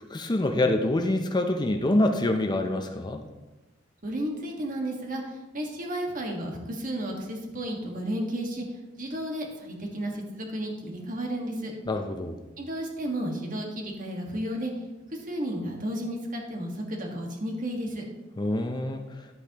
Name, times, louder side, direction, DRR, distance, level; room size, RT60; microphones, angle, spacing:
voice 1, 0.1-3.2 11.9-12.4 18.4-19.0, left 1 dB, 20° left, 6 dB, 0.6 m, -26 dB
voice 2, 4.0-8.6 9.0-11.7 12.6-14.7 15.1-18.0, right 1 dB, 45° right, 1 dB, 1.6 m, -33 dB
11.0 x 8.3 x 3.0 m, 1.1 s
head